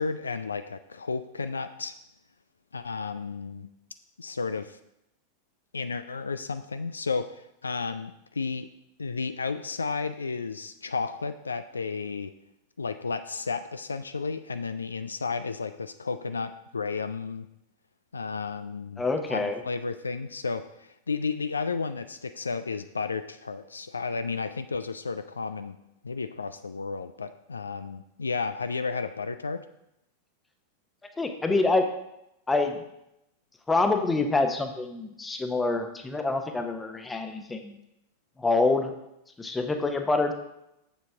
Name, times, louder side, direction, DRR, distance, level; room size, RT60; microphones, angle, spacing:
voice 1, 0.0-1.9 2.7-3.7 4.2-4.8 5.7-8.7 9.0-12.3 12.8-17.5 18.1-25.8 26.0-29.6, left 4 dB, 75° left, 10 dB, 0.3 m, -33 dB
voice 2, 19.0-19.6 31.2-31.8 32.5-32.8 33.7-37.8 38.4-38.9 39.4-40.3, left 3 dB, 10° left, 6 dB, 0.9 m, -26 dB
7.5 x 7.0 x 3.5 m, 0.83 s
figure-of-eight pair, 90°, 0 cm